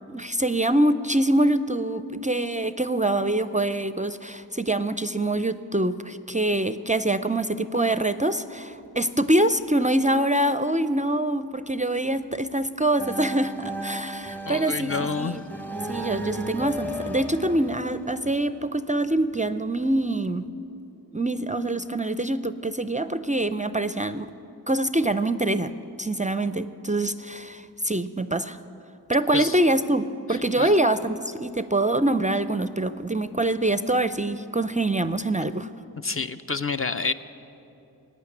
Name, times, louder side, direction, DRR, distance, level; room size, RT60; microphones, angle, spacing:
voice 1, 0.1-15.4 15.9-20.5 21.1-24.3 24.7-28.6 29.1-35.7, right 1 dB, 20° right, 12 dB, 0.4 m, -25 dB
sound 1, 13.0-18.7, right 1 dB, 5° left, 0.8 m, -35 dB
voice 2, 14.5-15.4 29.3-29.6 30.6-30.7 36.0-37.1, left 4 dB, 35° left, 10 dB, 0.5 m, -28 dB
15.5 x 9.3 x 9.7 m, 2.9 s
wide cardioid pair, 60°, 40 cm